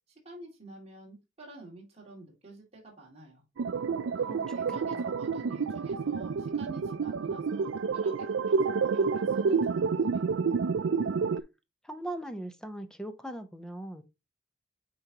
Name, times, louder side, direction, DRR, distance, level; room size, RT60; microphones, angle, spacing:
voice 1, 0.1-3.4 4.1-4.3 4.5-10.4, right 2 dB, 35° right, 2.6 m, -48 dB
sound 1, 3.6-11.4, right 5 dB, 75° right, 0.4 m, -29 dB
voice 2, 4.2-5.0 11.8-14.0, right 1 dB, 5° left, 0.8 m, -40 dB
8.8 x 4.4 x 2.9 m
head